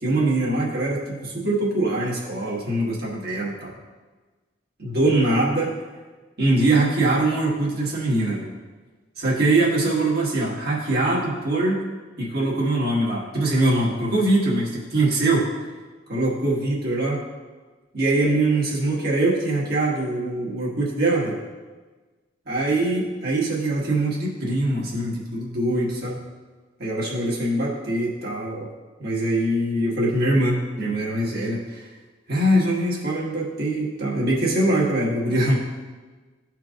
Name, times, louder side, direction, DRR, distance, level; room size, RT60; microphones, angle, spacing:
voice 1, 0.0-3.7 4.8-5.7 6.4-8.5 9.2-11.8 12.2-15.5 16.1-17.2 17.9-21.4 22.5-26.2 26.8-28.7 29.0-31.8 32.3-35.6, right 2 dB, 55° right, -5 dB, 1.7 m, -23 dB
13.5 x 4.6 x 2.5 m, 1.3 s
head